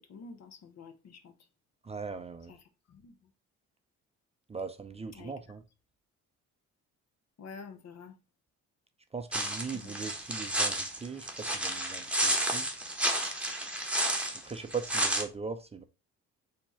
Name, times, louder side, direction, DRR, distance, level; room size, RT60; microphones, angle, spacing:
voice 1, 0.1-1.3 2.5-2.6 2.9-3.1 5.2-5.3 7.4-8.1 9.8-10.0, left 5 dB, 60° left, 0.9 m, -48 dB
voice 2, 1.8-2.5 4.5-5.6 9.1-12.7 14.4-15.8, right 5 dB, 20° right, 0.5 m, -39 dB
sound 1, 9.3-15.2, right 1 dB, 5° right, 1.1 m, -31 dB
4.3 x 2.9 x 4.2 m
cardioid pair, 90°, 30 cm